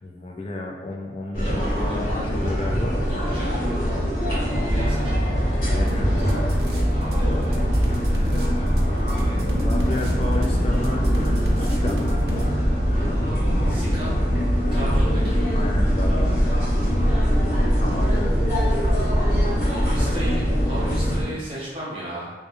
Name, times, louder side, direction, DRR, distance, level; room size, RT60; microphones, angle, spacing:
voice 1, 0.0-3.1 5.5-6.6 9.6-11.1 11.6-12.2 15.5-16.7 17.8-18.2, left 2 dB, 30° left, 0 dB, 0.3 m, -32 dB
sound 1, 1.3-21.2, equal, 50° left, 0.9 m, -22 dB
voice 2, 1.4-2.0 3.1-3.7 4.4-5.2 6.9-7.6 13.7-14.2 14.7-15.5 17.4-17.5 19.6-22.3, right 1 dB, 30° right, -8 dB, 0.8 m, -35 dB
sound 2, 5.9-7.2 7.4-12.5, right 1 dB, 60° right, 0.3 m, -33 dB
2.2 x 2.1 x 2.9 m, 1.2 s
head